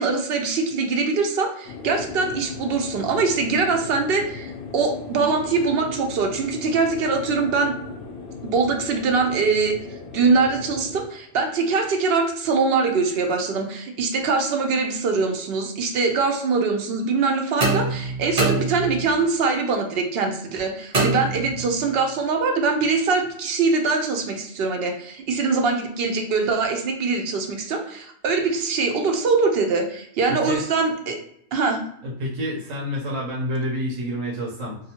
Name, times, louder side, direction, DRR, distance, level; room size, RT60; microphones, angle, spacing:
voice 1, 0.0-7.8 8.4-9.7 10.1-31.2 31.5-31.8, right 4 dB, 60° right, 4 dB, 0.7 m, -23 dB
sound 1, 1.7-11.1, left 5 dB, 65° left, 0.7 m, -37 dB
sound 2, 17.6-19.2 20.9-21.9, right 3 dB, 35° right, 0.8 m, -24 dB
voice 2, 30.3-30.6 32.0-34.8, equal, 85° right, -5 dB, 1.1 m, -28 dB
2.6 x 2.3 x 2.8 m, 0.71 s
omnidirectional pair, 1.3 m